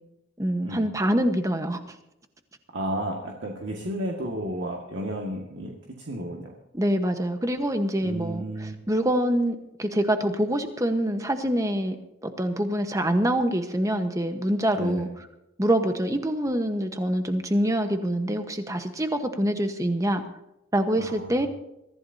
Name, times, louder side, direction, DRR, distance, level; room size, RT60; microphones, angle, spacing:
voice 1, 0.4-1.8 6.7-12.0 12.2-15.1 15.6-20.2 20.7-21.5, right 1 dB, 15° right, 7 dB, 1.2 m, -25 dB
voice 2, 2.7-6.5 8.0-8.8 14.8-15.1 20.9-21.5, right 1 dB, 60° right, -1 dB, 2.0 m, -32 dB
23.5 x 14.5 x 2.8 m, 0.87 s
head